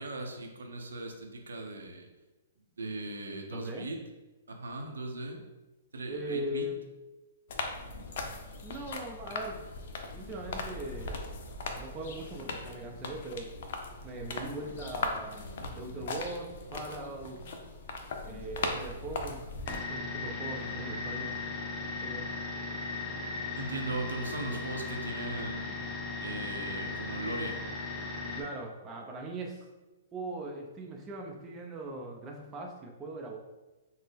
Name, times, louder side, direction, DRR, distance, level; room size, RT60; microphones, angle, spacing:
voice 1, 0.0-2.1 2.8-4.0 4.5-5.4 5.9-6.7 23.5-25.8 26.2-27.6, right 2 dB, 80° right, 2 dB, 0.6 m, -38 dB
voice 2, 3.5-3.9 6.1-6.8 8.6-9.6 10.1-11.2 11.8-13.5 14.0-15.5 15.8-17.5 18.2-19.6 19.9-21.3 22.0-22.3 28.4-29.7 30.1-33.4, right 1 dB, 20° right, 1 dB, 0.5 m, -40 dB
sound 1, 7.5-19.8, left 3 dB, 60° left, 0.5 m, -39 dB
sound 2, 19.7-28.4, left 3 dB, 15° left, 0.7 m, -37 dB
3.9 x 2.0 x 3.4 m, 1.1 s
hypercardioid pair, 125°, 0 cm